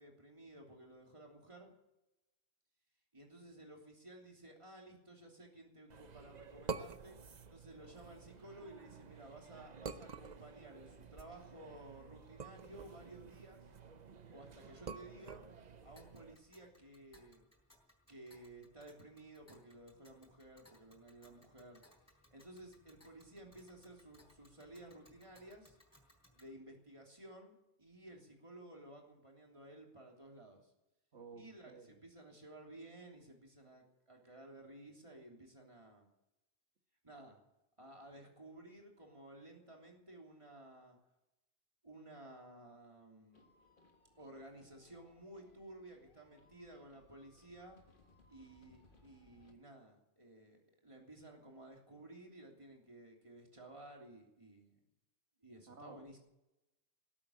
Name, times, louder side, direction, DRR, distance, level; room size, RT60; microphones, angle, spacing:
voice 1, 0.0-1.7 3.1-7.2 7.5-13.6 14.3-15.4 15.8-17.5 18.1-21.8 22.3-25.8 26.3-30.7 31.3-36.1 37.0-37.4 37.8-41.0 41.8-43.4 44.2-47.8 48.3-54.8 55.4-56.2, right 1 dB, 30° right, 0 dB, 3.3 m, -55 dB
sound 1, 5.9-16.4, right 5 dB, 45° right, 0.8 m, -49 dB
Tick, 15.9-26.5, left 1 dB, 15° left, 3.7 m, -67 dB
voice 2, 31.1-32.0 55.7-56.2, right 4 dB, 85° right, 4 dB, 1.9 m, -54 dB
sound 2, 43.3-49.6, left 3 dB, 50° left, 1.7 m, -68 dB
19.0 x 8.6 x 8.8 m, 0.94 s
omnidirectional pair, 1.1 m